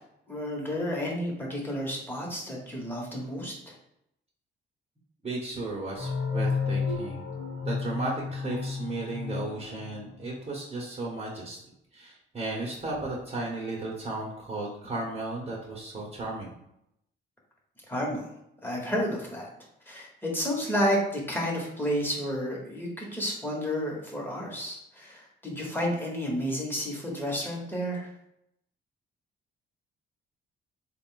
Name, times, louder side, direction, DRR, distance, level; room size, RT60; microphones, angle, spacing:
voice 1, 0.3-3.7 17.9-18.3 18.6-19.5 19.9-28.1, equal, 10° left, -2 dB, 1.3 m, -31 dB
voice 2, 5.2-7.2 7.6-11.6 11.9-16.5, right 2 dB, 30° right, -3 dB, 1.1 m, -35 dB
sound 1, 6.0-10.5, left 5 dB, 75° left, 0.8 m, -32 dB
3.6 x 2.5 x 3.8 m, 0.79 s
cardioid pair, 90°, 20 cm